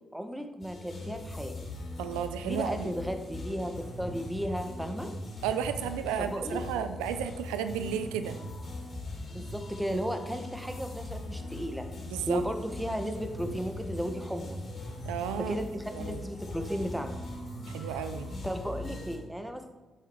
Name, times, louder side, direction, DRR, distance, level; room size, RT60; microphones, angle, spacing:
voice 1, 0.1-1.5 2.4-5.1 6.2-6.8 9.3-11.9 12.3-14.6 15.4-17.1 17.8-18.0 18.4-19.6, equal, 5° right, 6 dB, 1.5 m, -35 dB
sound 1, 0.6-19.2, left 1 dB, 50° left, 3.4 m, -40 dB
voice 2, 2.0-2.9 4.9-5.0 5.4-8.4 9.9-10.0 12.1-12.4 15.0-15.6 15.9-16.2 17.7-18.3, right 9 dB, 85° right, 10 dB, 0.4 m, -33 dB
9.9 x 7.2 x 4.8 m, 1.2 s
hypercardioid pair, 45°, 0 cm